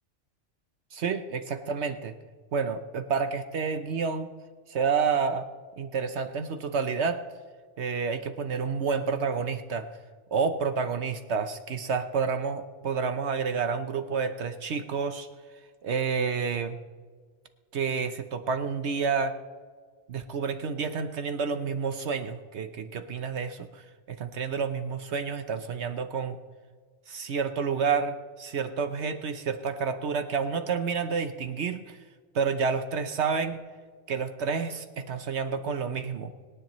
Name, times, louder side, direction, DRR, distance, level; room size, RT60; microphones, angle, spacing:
voice 1, 0.9-2.1 2.5-4.3 4.7-5.5 5.8-7.2 7.8-9.8 10.3-15.3 15.8-16.8 17.7-19.3 20.1-26.4 27.1-32.0 32.3-33.6 34.1-36.3, right 5 dB, 65° right, 9 dB, 1.0 m, -29 dB
25.5 x 10.5 x 3.1 m, 1.5 s
omnidirectional pair, 1.2 m